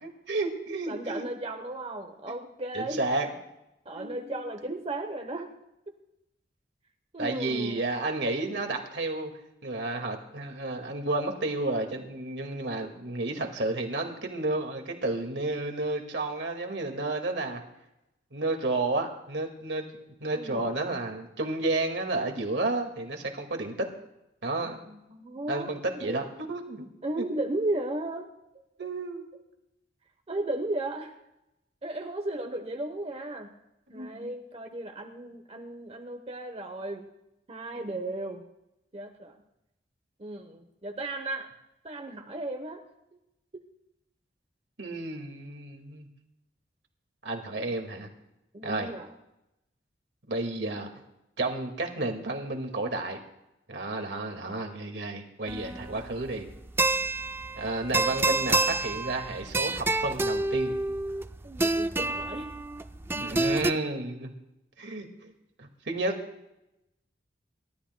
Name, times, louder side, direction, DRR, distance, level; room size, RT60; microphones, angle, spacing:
voice 1, 0.0-1.3 2.7-3.3 3.9-4.4 7.2-9.3 9.6-17.6 18.3-23.9 24.4-24.8 25.5-26.9 27.2-27.3 28.8-29.3 32.0-32.1 33.9-34.3 37.8-37.9 44.8-46.1 47.2-48.1 48.6-48.9 50.3-50.9 51.4-53.2 53.7-56.5 57.6-60.7 63.1-64.3 64.8-65.3 65.6-66.2, right 2 dB, 85° right, 4 dB, 2.0 m, -31 dB
voice 2, 0.9-3.0 3.8-5.5 7.1-7.8 20.3-20.7 24.6-26.2 27.0-28.3 30.3-31.1 31.8-33.5 33.9-37.1 37.5-38.5 38.9-39.4 40.2-41.5 41.8-42.8 43.5-43.6 48.5-49.1 61.4-62.5, right 2 dB, 35° right, 3 dB, 1.0 m, -35 dB
sound 1, 55.5-63.7, right 2 dB, 15° right, 0.4 m, -28 dB
28.5 x 13.0 x 2.2 m, 0.89 s
head